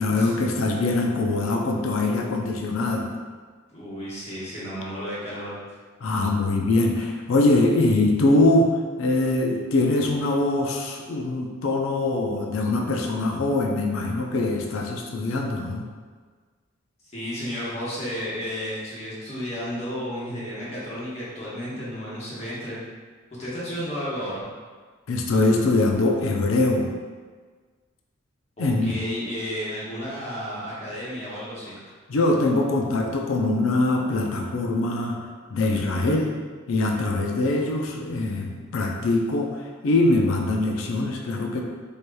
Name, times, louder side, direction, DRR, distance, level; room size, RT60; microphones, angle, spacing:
voice 1, 0.0-3.2 6.0-15.8 25.1-26.9 28.6-29.0 32.1-35.2 35.5-36.3 36.7-39.5 39.8-41.6, left 2 dB, 85° left, 1 dB, 0.5 m, -23 dB
voice 2, 3.7-5.6 17.1-22.8 23.4-24.4 28.6-31.8, equal, 30° left, -9 dB, 1.1 m, -32 dB
4.7 x 2.8 x 2.2 m, 1.5 s
head